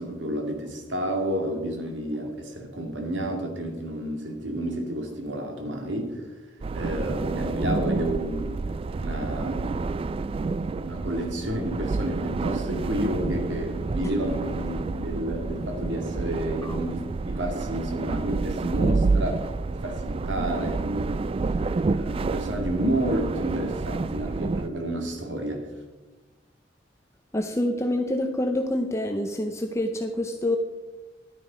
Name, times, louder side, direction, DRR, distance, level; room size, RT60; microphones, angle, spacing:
voice 1, 0.0-6.4 6.7-8.6 8.9-10.0 10.5-21.3 21.8-25.7, right 1 dB, 80° right, 2.3 m, -30 dB
sound 1, 6.6-24.7, right 3 dB, 30° right, 0.3 m, -29 dB
sound 2, 10.0-16.6, right 1 dB, 85° left, 1.9 m, -44 dB
voice 2, 27.3-30.6, left 1 dB, 15° left, 0.7 m, -27 dB
11.5 x 9.7 x 5.1 m
head